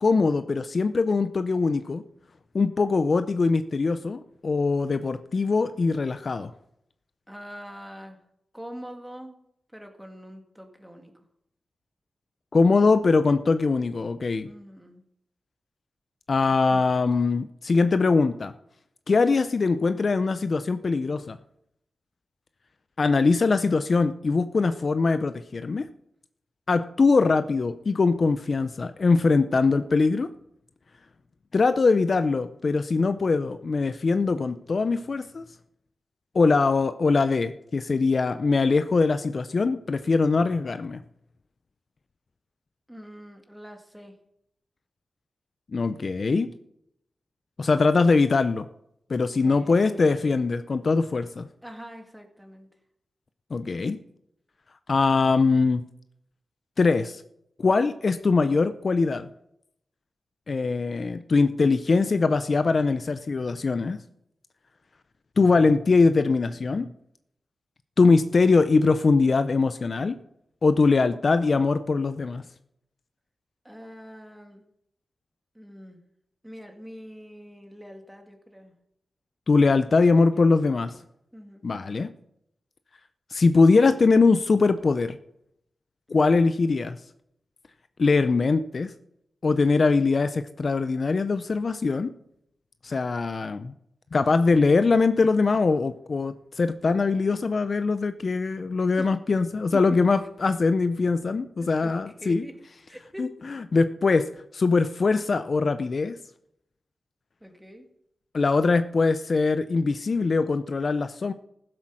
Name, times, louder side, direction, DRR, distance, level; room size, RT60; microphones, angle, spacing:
voice 1, 0.0-2.0 2.5-6.5 12.5-14.5 16.3-18.5 19.1-21.4 23.0-25.9 26.7-30.3 31.5-35.4 36.3-41.0 45.7-46.5 47.6-48.6 49.1-51.5 53.5-54.0 54.9-55.8 56.8-57.2 57.6-59.3 60.5-64.0 65.4-66.9 68.0-70.1 70.6-72.4 79.5-80.9 81.6-82.1 83.3-85.2 86.1-87.0 88.0-88.9 89.4-92.1 92.8-93.7 94.1-102.4 103.2-103.3 103.7-106.2 108.3-111.3, left 4 dB, 50° left, 11 dB, 0.5 m, -22 dB
voice 2, 7.3-8.2 8.5-9.4 9.7-11.2 14.4-15.0 42.9-44.2 49.4-50.4 51.6-52.7 70.8-70.9 73.6-74.6 75.5-76.0 76.4-78.8 79.7-79.9 80.3-81.0 81.3-81.6 86.1-86.2 99.0-99.1 99.7-100.3 101.6-102.6 102.9-103.5 107.4-107.9, equal, 5° right, 4 dB, 2.0 m, -43 dB
15.5 x 7.6 x 6.2 m, 0.77 s
wide cardioid pair, 85°, 0 cm